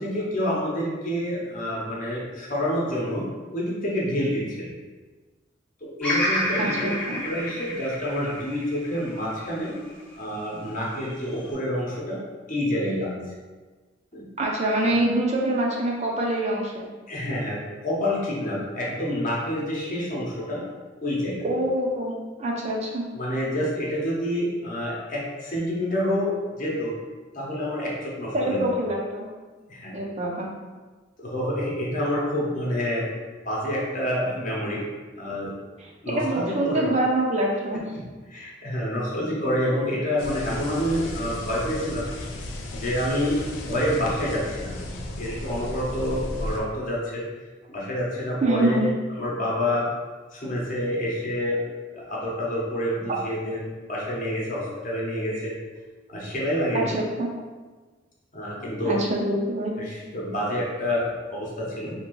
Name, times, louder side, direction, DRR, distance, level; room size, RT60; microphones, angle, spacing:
voice 1, 0.0-3.3 3.5-4.7 5.8-6.9 7.2-9.8 10.2-12.2 12.5-13.2 14.1-14.2 17.1-17.6 17.8-20.6 21.0-21.4 23.1-27.0 27.3-28.6 29.7-30.0 31.2-33.1 33.4-34.8 35.2-35.5 36.0-36.9 38.3-42.1 42.7-44.8 45.2-47.2 47.7-49.9 50.3-51.6 51.9-55.5 56.1-56.9 58.3-59.0 59.8-61.9, equal, 45° left, -4 dB, 0.8 m, -28 dB
Bird vocalization bird call bird song, 6.0-10.2 10.8-11.5, equal, 5° left, 0.7 m, -30 dB
voice 2, 6.6-7.2 14.4-16.9 21.4-23.0 28.3-29.3 29.9-30.5 35.8-37.8 48.4-48.9 53.1-53.2 56.7-57.3 58.8-59.7, right 1 dB, 35° right, -2 dB, 0.4 m, -25 dB
sound 1, 40.2-46.6, left 1 dB, 85° left, 0.4 m, -35 dB
2.8 x 2.5 x 3.0 m, 1.3 s
head